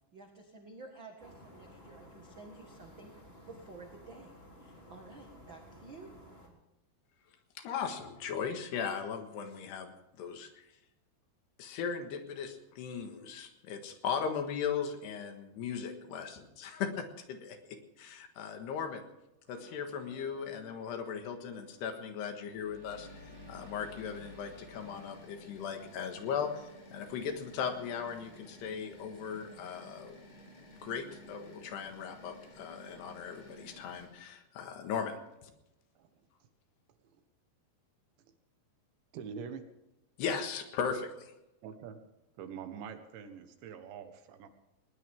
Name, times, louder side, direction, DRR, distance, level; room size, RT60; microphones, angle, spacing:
voice 1, 0.1-3.1 3.4-4.3 4.6-6.1, right 3 dB, 65° right, 2 dB, 1.2 m, -51 dB
sound 1, 1.2-6.5, equal, 15° left, 3.1 m, -54 dB
voice 2, 7.6-10.5 11.6-19.0 19.5-30.2 30.8-35.2 35.4-35.5 40.2-41.3, left 7 dB, 70° left, 6 dB, 3.5 m, -38 dB
sound 2, 19.5-25.1, left 1 dB, 45° right, 4.9 m, -55 dB
sound 3, 22.9-34.1, equal, 40° left, 5.0 m, -54 dB
voice 3, 39.1-39.6 41.6-42.0 42.4-44.5, right 7 dB, 80° right, 8 dB, 3.7 m, -44 dB
20.0 x 19.5 x 3.7 m, 0.91 s
omnidirectional pair, 5.2 m